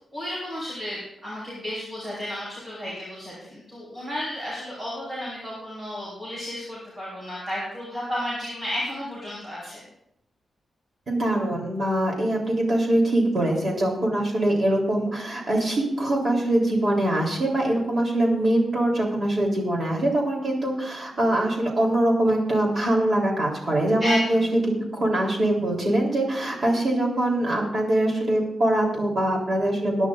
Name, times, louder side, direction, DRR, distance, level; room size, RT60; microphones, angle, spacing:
voice 1, 0.0-9.8 24.0-24.4, left 1 dB, 20° right, -8 dB, 5.1 m, -32 dB
voice 2, 11.1-24.4 24.9-30.1, right 1 dB, 40° right, -1 dB, 3.6 m, -23 dB
21.0 x 10.5 x 2.6 m, 0.81 s
wide cardioid pair, 145°, 0 cm